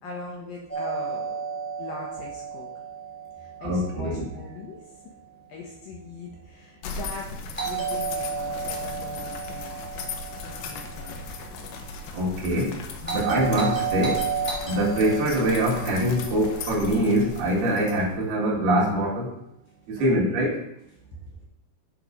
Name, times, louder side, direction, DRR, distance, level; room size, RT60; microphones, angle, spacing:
voice 1, 0.0-1.4 1.8-2.7 3.4-4.8 5.5-7.3 7.6-9.7 10.4-11.1 13.0-13.5 14.7-14.8 20.0-20.1, left 3 dB, 70° left, -2 dB, 2.5 m, -40 dB
Doorbell, 0.7-4.7 7.6-11.8 13.0-17.5, right 6 dB, 5° left, 1.9 m, -33 dB
voice 2, 3.6-4.2 12.1-12.8 13.1-14.3 14.6-19.3 20.0-20.6, right 1 dB, 65° right, -5 dB, 3.7 m, -23 dB
sound 1, 6.8-18.3, left 4 dB, 85° left, 3.2 m, -37 dB
9.1 x 4.9 x 5.3 m, 0.81 s
omnidirectional pair, 5.1 m